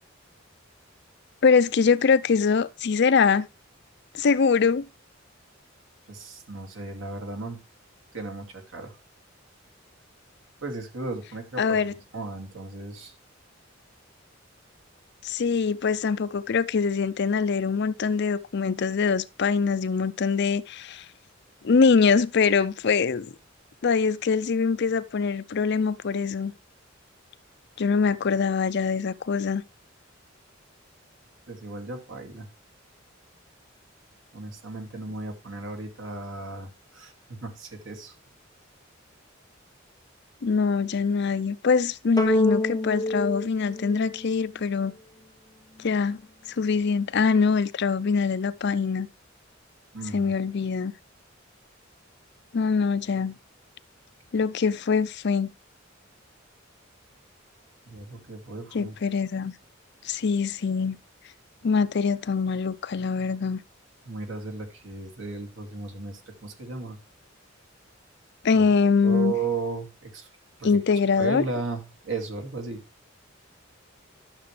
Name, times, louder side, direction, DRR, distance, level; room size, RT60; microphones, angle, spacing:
voice 1, 1.4-3.5 4.1-4.9 11.6-11.9 15.2-21.0 21.6-23.3 23.8-26.5 27.8-29.6 40.4-44.9 45.8-46.2 46.6-49.1 50.1-50.9 52.5-53.3 54.3-55.5 58.7-59.5 60.0-61.0 61.6-63.6 68.4-69.3 70.6-71.5, left 5 dB, 60° left, 0.5 m, -23 dB
voice 2, 6.1-7.6 8.1-8.9 10.6-11.8 12.1-13.1 31.5-32.5 34.3-38.1 49.9-50.3 57.9-58.9 64.1-67.0 68.5-68.7 69.0-70.3 70.6-70.7 71.2-72.8, right 4 dB, 75° right, 2.4 m, -35 dB
sound 1, 42.2-44.8, left 1 dB, 20° left, 0.8 m, -27 dB
11.5 x 6.8 x 3.3 m
head